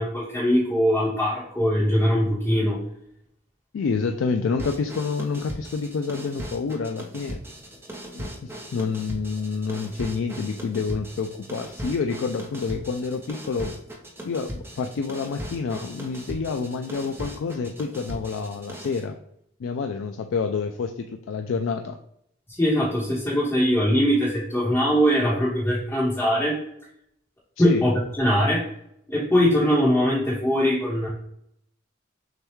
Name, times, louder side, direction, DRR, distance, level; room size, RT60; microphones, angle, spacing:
voice 1, 0.0-2.8 22.6-26.6 27.6-28.6 29.1-31.1, equal, 15° left, -8 dB, 1.0 m, -21 dB
voice 2, 3.7-7.4 8.1-13.7 14.2-19.2 19.6-22.0 27.6-27.8, left 5 dB, 75° left, 5 dB, 0.3 m, -28 dB
sound 1, 4.6-19.1, equal, 10° right, 0.7 m, -38 dB
6.4 x 2.3 x 3.0 m, 0.74 s
head